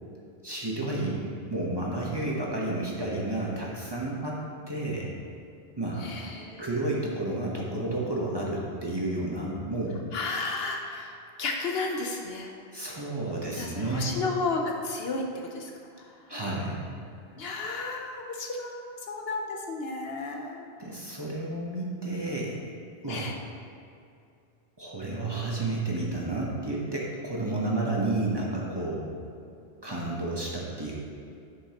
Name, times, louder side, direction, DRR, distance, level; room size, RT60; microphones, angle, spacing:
voice 1, 0.4-4.4 4.7-5.1 5.8-6.1 6.6-10.0 12.7-14.2 16.3-16.8 20.8-22.5 23.0-23.2 24.8-29.1 29.8-31.0, right 2 dB, 25° right, -4 dB, 1.0 m, -31 dB
voice 2, 6.0-6.8 10.1-12.5 13.5-16.3 17.4-20.7 23.1-23.4, left 3 dB, 65° left, 2 dB, 0.9 m, -33 dB
10.0 x 5.7 x 2.9 m, 2.5 s
omnidirectional pair, 1.1 m